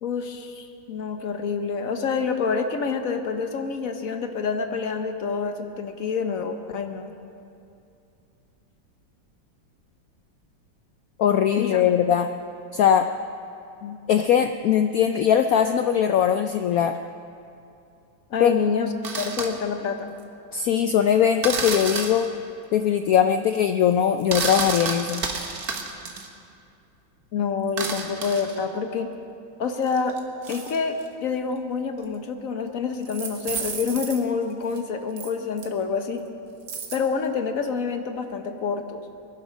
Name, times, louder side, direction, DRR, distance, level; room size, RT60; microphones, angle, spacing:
voice 1, 0.0-7.1 11.6-11.8 13.8-14.0 18.3-20.1 27.3-29.1 29.6-30.2 30.5-36.2 36.9-39.0, left 5 dB, 55° left, 7 dB, 1.2 m, -27 dB
voice 2, 11.2-12.3 12.7-13.1 14.1-17.0 18.4-18.5 20.5-22.3 22.7-25.2, left 9 dB, 80° left, 8 dB, 0.8 m, -20 dB
sound 1, 19.0-19.5 21.4-22.3 24.2-26.3 27.7-28.7 29.8-31.0 32.0-32.1 33.0-34.2 34.7-34.8 35.2-35.3 35.6-35.7 36.7-37.0, right 4 dB, 55° right, 1.7 m, -30 dB
22.0 x 11.5 x 5.2 m, 2.6 s
omnidirectional pair, 2.1 m